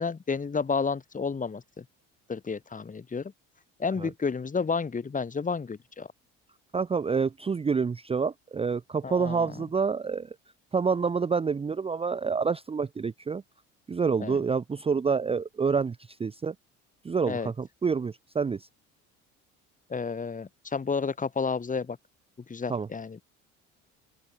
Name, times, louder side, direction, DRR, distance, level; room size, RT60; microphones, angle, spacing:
voice 1, 0.0-1.8 2.3-3.3 3.8-6.1 9.0-9.5 14.2-14.4 17.3-17.5 19.9-22.0 22.5-23.2, left 5 dB, 25° left, 2.0 m, -31 dB
voice 2, 6.7-10.3 10.7-13.4 13.9-16.5 17.0-18.7 22.7-22.9, right 5 dB, 20° right, 0.6 m, -28 dB
open air
supercardioid pair, 85°, 31 cm